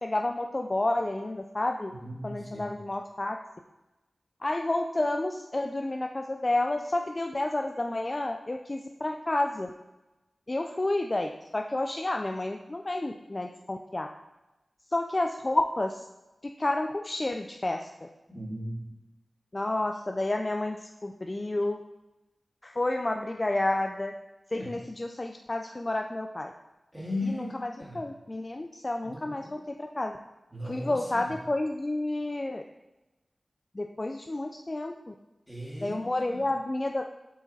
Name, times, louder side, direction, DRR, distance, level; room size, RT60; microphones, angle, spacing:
voice 1, 0.0-2.0 2.2-3.4 4.4-9.7 10.5-14.1 14.9-16.0 16.6-17.9 19.5-21.8 22.6-24.1 24.5-26.5 27.2-30.2 30.7-32.6 33.8-35.1 35.8-37.0, left 2 dB, 30° left, 4 dB, 0.3 m, -30 dB
voice 2, 1.9-2.7 18.3-18.9 24.5-24.7 26.9-28.0 29.0-29.5 30.5-31.3 35.5-36.4, left 1 dB, ahead, -5 dB, 1.9 m, -37 dB
7.1 x 4.8 x 4.0 m, 1.0 s
wide cardioid pair, 100°, 0 cm